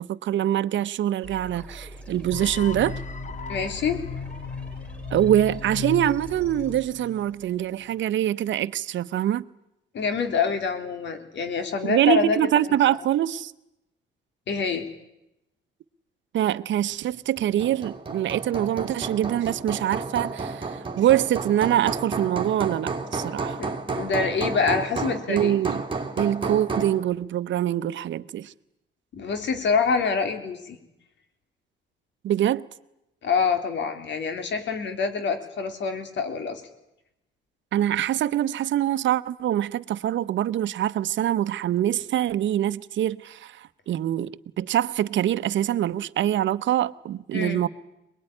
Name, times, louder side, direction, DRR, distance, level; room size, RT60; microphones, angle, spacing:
voice 1, 0.0-3.0 5.1-9.4 11.8-13.5 16.3-23.6 25.3-25.8 26.2-28.5 32.2-32.6 37.7-47.7, right 11 dB, 70° right, 0.9 m, -24 dB
sound 1, 1.2-7.7, right 1 dB, 5° left, 5.0 m, -42 dB
sound 2, 2.3-7.4, left 5 dB, 40° left, 0.8 m, -36 dB
voice 2, 3.5-4.0 9.9-12.4 14.5-14.9 23.6-25.5 29.1-30.8 33.2-36.6 47.3-47.6, left 5 dB, 65° left, 3.3 m, -26 dB
Hammer, 17.4-27.0, right 3 dB, 25° right, 3.0 m, -32 dB
22.5 x 21.0 x 9.9 m
cardioid pair, 90°, 20 cm